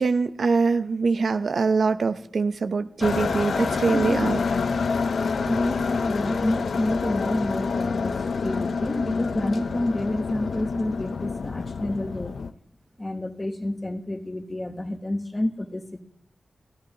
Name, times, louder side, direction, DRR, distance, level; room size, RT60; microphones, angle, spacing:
voice 1, 0.0-4.4, right 4 dB, 75° right, 10 dB, 0.7 m, -23 dB
sound 1, 3.0-12.5, left 5 dB, 85° left, 0.6 m, -27 dB
voice 2, 3.9-4.3 5.4-12.3 13.0-16.0, left 1 dB, 20° left, 7 dB, 1.1 m, -29 dB
28.5 x 15.0 x 2.9 m, 0.67 s
wide cardioid pair, 115°, 0 cm